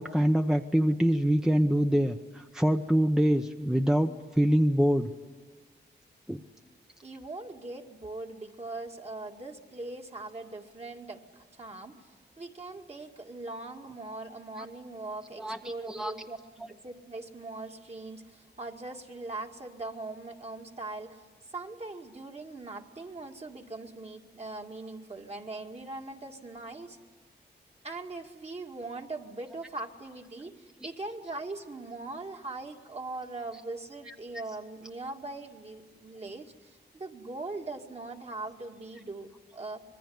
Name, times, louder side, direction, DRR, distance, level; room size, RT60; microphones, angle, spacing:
voice 1, 0.0-5.1 6.3-6.4 15.4-15.6 15.8-16.1 30.8-30.9 34.1-34.2, equal, 5° right, 6 dB, 0.8 m, -25 dB
voice 2, 7.0-27.0 27.8-39.8, right 2 dB, 35° right, 2 dB, 2.2 m, -41 dB
25.5 x 21.0 x 9.5 m, 1.4 s
wide cardioid pair, 100°, 18 cm